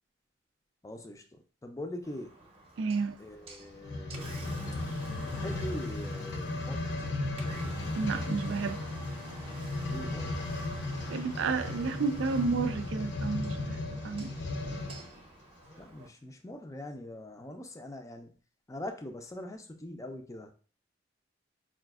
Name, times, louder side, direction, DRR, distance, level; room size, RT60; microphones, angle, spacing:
voice 1, 0.8-2.3 3.2-4.4 5.2-7.1 9.9-10.4 15.8-18.3 18.7-20.5, left 1 dB, 15° left, 0.4 m, -42 dB
Engine, 2.0-16.1, right 1 dB, 30° right, 0.7 m, -48 dB
voice 2, 2.8-3.2 8.0-8.8 11.1-14.3, right 4 dB, 75° right, 0.4 m, -31 dB
sound 1, 3.8-15.1 15.7-15.8, left 2 dB, 60° left, 0.6 m, -36 dB
4.7 x 2.5 x 2.3 m
head